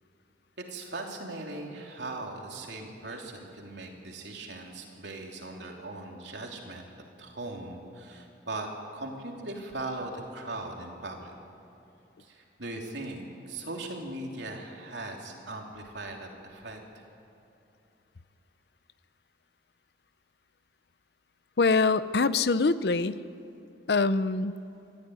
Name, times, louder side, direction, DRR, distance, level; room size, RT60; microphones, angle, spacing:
voice 1, 0.6-6.9 7.2-11.3 12.2-16.8 24.7-24.9, right 2 dB, 80° right, 1 dB, 3.2 m, -39 dB
voice 2, 21.6-23.2 23.9-24.6, left 4 dB, 65° left, 15 dB, 0.6 m, -24 dB
24.5 x 14.0 x 9.5 m, 2.8 s
head